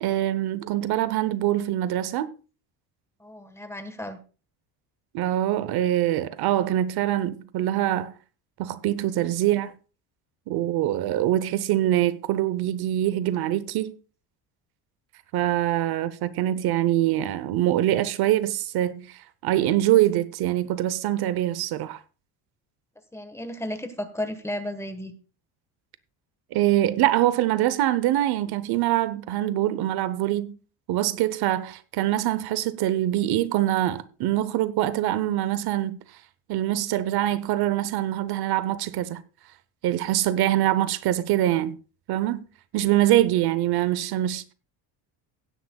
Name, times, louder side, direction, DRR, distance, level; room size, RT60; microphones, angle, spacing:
voice 1, 0.0-2.3 5.1-8.1 8.6-9.7 10.5-13.9 15.3-22.0 26.5-30.5 30.9-36.0 36.5-39.2 39.8-41.7 42.1-42.4 42.7-44.5, right 13 dB, 65° right, 0.8 m, -24 dB
voice 2, 3.2-4.2 23.1-25.1, left 1 dB, 5° left, 1.3 m, -33 dB
17.0 x 10.0 x 2.3 m
cardioid pair, 145°, 41 cm